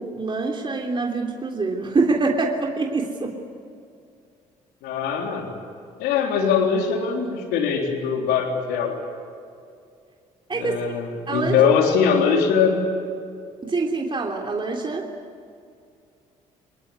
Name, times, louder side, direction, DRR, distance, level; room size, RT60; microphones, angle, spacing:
voice 1, 0.0-3.3 10.5-10.7 11.3-11.7 13.6-15.0, right 3 dB, 30° right, 0 dB, 3.3 m, -25 dB
voice 2, 4.8-5.5 6.0-9.0 10.5-12.8, left 6 dB, 80° left, 2 dB, 3.8 m, -21 dB
25.0 x 21.0 x 9.7 m, 2.3 s
hypercardioid pair, 60°, 16 cm